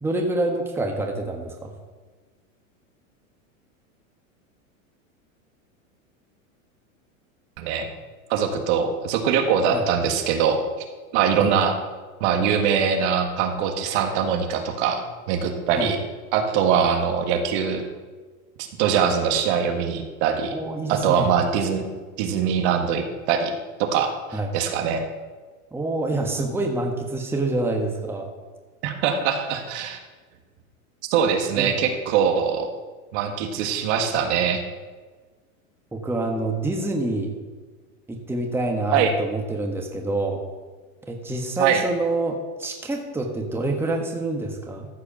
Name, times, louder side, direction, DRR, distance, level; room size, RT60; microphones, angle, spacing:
voice 1, 0.0-1.7 9.7-9.9 11.4-11.5 15.8-15.9 20.5-21.3 24.3-24.5 25.7-28.3 31.5-31.7 35.9-37.3 38.1-40.4 41.1-44.9, right 2 dB, 5° right, 1 dB, 1.3 m, -27 dB
voice 2, 7.6-7.9 8.3-10.6 11.1-11.8 12.2-16.0 16.3-17.8 18.8-20.5 20.9-21.9 22.2-25.0 28.8-30.0 31.1-32.7 33.1-34.6 38.9-39.1 41.6-41.8, right 7 dB, 55° right, 5 dB, 1.7 m, -22 dB
14.0 x 4.8 x 7.1 m, 1.4 s
supercardioid pair, 125°, 41 cm